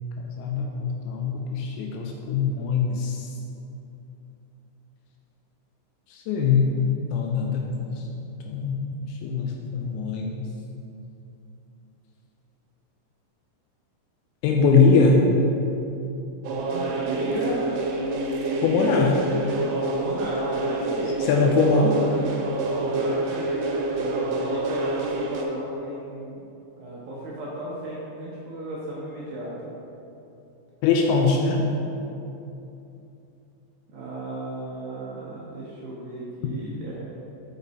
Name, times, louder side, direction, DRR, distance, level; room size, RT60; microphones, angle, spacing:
voice 1, 0.4-3.2 6.1-6.7 7.1-7.9 8.5-8.9 9.2-10.5 14.4-15.2 18.6-19.2 21.2-22.0 30.8-31.7, left 4 dB, 80° left, 1 dB, 2.7 m, -22 dB
sound 1, 16.4-25.4, right 2 dB, 90° right, 3.2 m, -27 dB
voice 2, 16.6-17.7 19.9-21.5 22.8-23.3 24.0-26.4 26.8-29.7 33.9-37.0, right 2 dB, 75° right, -7 dB, 2.2 m, -35 dB
7.2 x 5.3 x 4.0 m, 2.8 s
omnidirectional pair, 5.5 m